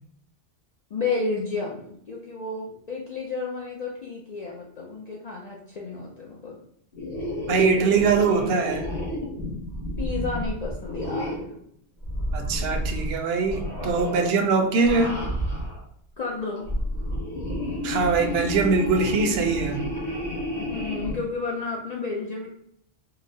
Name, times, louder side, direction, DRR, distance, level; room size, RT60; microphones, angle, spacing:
voice 1, 0.9-6.6 10.0-11.3 16.2-16.7 20.6-22.5, left 4 dB, 55° left, -3 dB, 0.4 m, -31 dB
sound 1, 6.9-11.6 12.0-13.2 13.4-14.3 14.7-15.8 16.5-21.2, equal, 40° left, 1.2 m, -30 dB
voice 2, 7.5-8.9 12.3-15.2 17.8-19.8, right 4 dB, 65° right, 5 dB, 0.7 m, -22 dB
3.8 x 2.0 x 2.7 m, 0.69 s
omnidirectional pair, 1.2 m